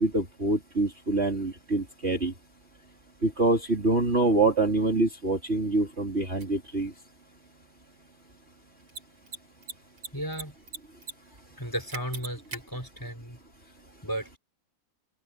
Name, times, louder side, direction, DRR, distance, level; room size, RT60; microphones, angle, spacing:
voice 1, 0.0-2.3 3.2-6.9, right 2 dB, 30° right, 3.6 m, -25 dB
Mechanisms, 6.4-6.5 8.8-9.0 9.3-9.4 9.6-10.4 10.7-11.1 11.4-11.5 11.9-12.6, right 4 dB, 75° right, 4.6 m, -38 dB
voice 2, 10.1-10.5 11.6-13.4 14.0-14.4, equal, 10° left, 5.1 m, -34 dB
omnidirectional pair, 2.3 m